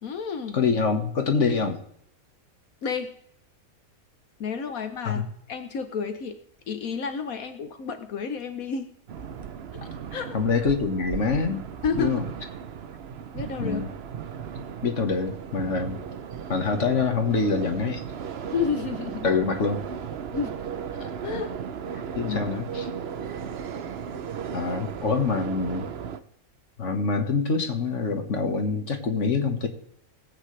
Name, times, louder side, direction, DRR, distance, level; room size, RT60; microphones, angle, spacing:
voice 1, 0.0-0.6 2.8-3.1 4.4-6.4 6.7-8.9 9.7-10.3 11.8-12.2 13.3-13.8 18.5-19.3 20.3-20.5 20.9-21.5 21.9-22.0 22.3-23.0, left 5 dB, 75° left, 8 dB, 1.4 m, -31 dB
voice 2, 0.5-1.8 5.1-5.2 10.3-11.7 12.0-12.3 13.6-13.9 14.8-16.0 16.5-18.0 19.2-19.8 22.2-22.8 24.5-25.9 26.8-29.7, left 4 dB, 55° left, 5 dB, 1.8 m, -25 dB
sound 1, 9.1-26.2, right 7 dB, 55° right, 0.9 m, -36 dB
20.5 x 8.6 x 3.3 m, 0.71 s
omnidirectional pair, 1.5 m